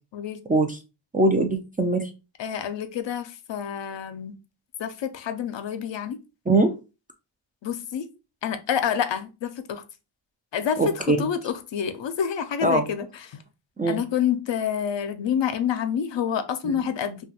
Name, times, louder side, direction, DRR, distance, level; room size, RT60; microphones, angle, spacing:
voice 1, 0.5-0.8 1.1-2.1 6.5-6.7 10.8-11.2 12.6-12.9 13.8-14.0 16.6-16.8, right 2 dB, 20° right, 4 dB, 0.3 m, -22 dB
voice 2, 2.4-4.4 4.8-6.2 7.6-8.1 8.4-9.8 10.5-10.9 11.2-13.4 13.9-17.2, left 8 dB, 60° left, 9 dB, 0.5 m, -28 dB
2.4 x 2.3 x 2.7 m, 0.29 s
cardioid pair, 45°, 50 cm